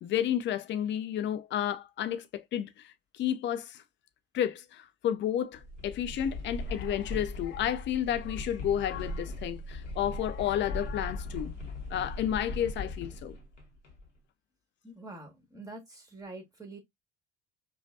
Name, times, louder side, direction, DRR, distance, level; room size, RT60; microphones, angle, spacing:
voice 1, 0.0-3.8 4.3-11.5 11.9-13.3, left 10 dB, 30° left, 0.5 m, -31 dB
sound 1, 5.5-14.1, left 2 dB, 85° left, 0.9 m, -39 dB
voice 2, 14.8-16.8, right 2 dB, 10° right, 1.8 m, -45 dB
5.0 x 2.3 x 2.6 m
figure-of-eight pair, 60°, 36 cm